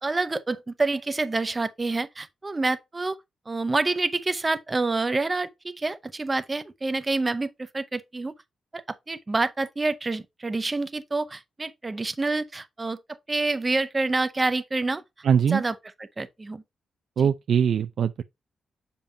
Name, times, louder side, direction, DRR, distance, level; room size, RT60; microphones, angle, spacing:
voice 1, 0.0-3.2 3.5-8.3 8.7-13.0 13.3-15.0 15.5-15.7 16.2-16.6, right 3 dB, 20° right, 0.7 m, -27 dB
voice 2, 15.2-15.6 17.2-18.2, right 7 dB, 65° right, 0.4 m, -22 dB
7.0 x 5.4 x 2.7 m
cardioid pair, 115°, 0 cm